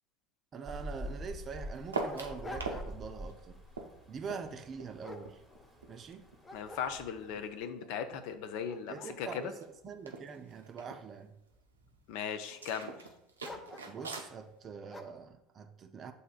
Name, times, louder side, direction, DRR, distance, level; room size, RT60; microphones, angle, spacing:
Dog, 0.5-0.6 0.9-1.0 1.6-3.2 3.6-3.9 4.5-6.0 6.4-7.4 7.9-8.0 8.5-10.8 11.5-12.1 13.4-14.2 14.9-15.3, left 2 dB, 15° left, 0.6 m, -49 dB
voice 1, 0.5-3.6 4.1-5.4 5.8-6.3 8.9-11.3 13.9-16.1, right 5 dB, 40° right, 0.5 m, -44 dB
Rain, 0.6-7.6, equal, ahead, 1.1 m, -47 dB
sound 1, 1.9-2.8 3.1-5.9 6.3-8.0 8.3-8.8 9.1-9.2 9.4-9.7 10.0-11.0 12.5-14.3, right 3 dB, 85° right, 0.5 m, -42 dB
voice 2, 6.5-9.5 12.1-13.0, left 7 dB, 60° left, 0.5 m, -38 dB
8.1 x 2.7 x 2.4 m
hypercardioid pair, 70°, 0 cm